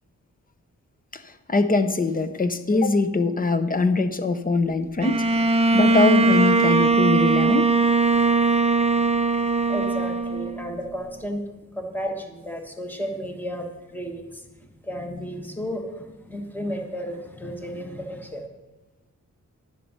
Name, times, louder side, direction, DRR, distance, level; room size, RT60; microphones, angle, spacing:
voice 1, 1.1-5.5 5.7-7.7, left 3 dB, 25° left, 10 dB, 0.7 m, -22 dB
Bowed string instrument, 5.0-10.8, right 3 dB, 20° right, 0.6 m, -20 dB
voice 2, 9.7-18.5, equal, 5° left, 3 dB, 1.3 m, -33 dB
11.0 x 7.4 x 5.6 m, 1.1 s
wide cardioid pair, 145°, 32 cm